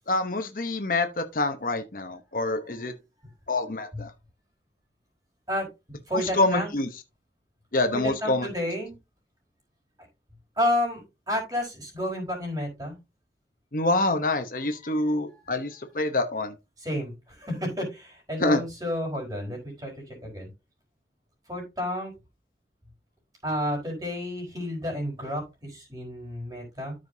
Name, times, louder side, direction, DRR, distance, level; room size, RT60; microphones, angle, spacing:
voice 1, 0.1-2.9 3.5-4.1 6.4-6.9 7.7-8.5 13.7-16.5 18.4-18.6, left 2 dB, 50° left, 1.0 m, -26 dB
voice 2, 2.6-2.9 3.9-4.0 5.5-5.7 6.1-6.7 7.9-9.0 10.6-13.0 14.5-15.6 16.8-20.5 21.5-22.1 23.4-26.9, left 1 dB, 20° right, 4.3 m, -31 dB
13.5 x 5.2 x 2.7 m
head